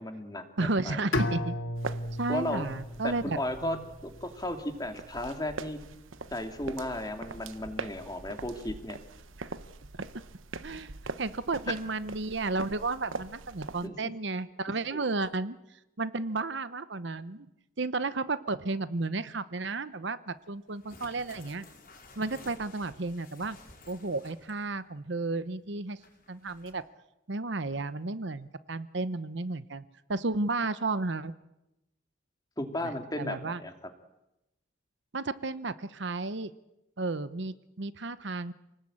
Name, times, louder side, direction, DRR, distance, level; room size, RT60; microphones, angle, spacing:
voice 1, 0.0-1.1 2.3-2.7 3.0-5.8 6.3-9.0 13.8-13.9 32.6-33.7, left 1 dB, 20° left, 5 dB, 2.6 m, -35 dB
voice 2, 0.6-1.6 2.2-3.8 9.4-9.5 10.6-10.9 11.2-15.6 16.0-17.5 17.8-21.6 22.2-23.6 23.9-26.0 26.3-26.8 27.3-29.8 30.1-31.3 32.8-33.6 35.1-36.5 37.0-38.5, right 3 dB, 60° right, 14 dB, 0.9 m, -33 dB
Bowed string instrument, 1.1-4.1, left 1 dB, 70° left, 2.3 m, -34 dB
sound 1, 1.8-13.9, right 3 dB, 75° right, 1.2 m, -43 dB
sound 2, 20.7-24.7 25.0-25.1 26.0-26.7, left 3 dB, 45° left, 5.4 m, -53 dB
28.5 x 19.5 x 8.8 m, 0.91 s
head